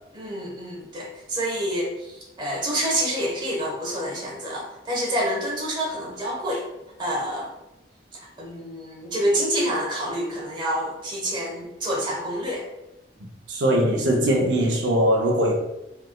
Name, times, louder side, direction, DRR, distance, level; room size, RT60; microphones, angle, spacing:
voice 1, 0.1-6.7 7.0-7.5 8.4-12.6, equal, 25° right, -4 dB, 1.0 m, -27 dB
voice 2, 13.5-15.5, equal, 90° right, -1 dB, 0.6 m, -21 dB
3.2 x 3.1 x 2.3 m, 0.91 s
head